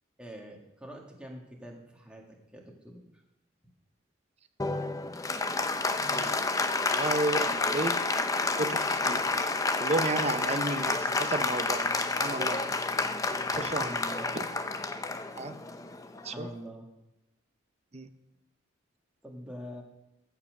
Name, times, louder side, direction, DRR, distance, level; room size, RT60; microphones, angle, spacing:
voice 1, 0.2-3.1 13.5-14.3 16.2-16.9 19.2-19.8, equal, 5° right, -1 dB, 2.0 m, -44 dB
Applause, 4.6-16.5, left 3 dB, 15° left, 0.6 m, -30 dB
voice 2, 6.1-8.0 8.6-9.2 9.8-12.7 13.6-14.0 14.3-14.4 15.4-15.5 16.2-16.5 17.9-18.1, right 2 dB, 30° right, 10 dB, 0.7 m, -33 dB
14.5 x 5.7 x 6.5 m, 0.95 s
head